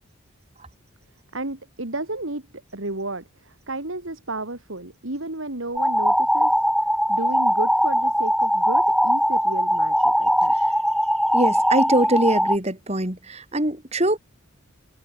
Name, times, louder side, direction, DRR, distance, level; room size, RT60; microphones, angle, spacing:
voice 1, 1.3-6.6 7.1-10.5, right 2 dB, 70° right, 2.8 m, -32 dB
sound 1, 5.8-12.6, equal, ahead, 0.7 m, -20 dB
voice 2, 11.3-14.2, right 1 dB, 30° right, 3.0 m, -23 dB
head